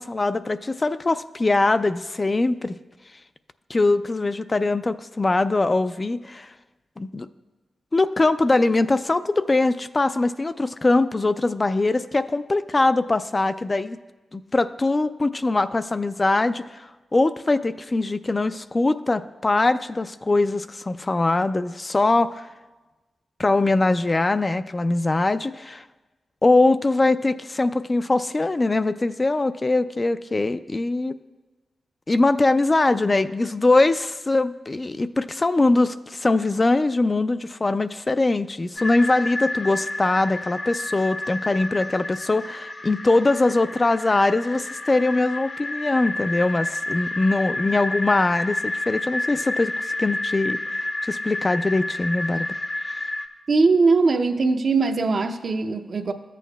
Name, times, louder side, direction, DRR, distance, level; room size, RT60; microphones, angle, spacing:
voice 1, 0.0-2.8 3.7-6.5 7.0-7.3 7.9-14.0 14.3-16.9 17.1-22.5 23.4-25.8 26.4-31.1 32.1-50.6 51.1-52.5, left 2 dB, 35° left, 11 dB, 0.3 m, -22 dB
sound 1, 38.8-53.3, left 2 dB, 50° left, 0.8 m, -30 dB
voice 2, 53.5-56.1, right 4 dB, 60° right, 7 dB, 0.6 m, -20 dB
13.5 x 8.3 x 2.3 m, 1.2 s
cardioid pair, 55°, 0 cm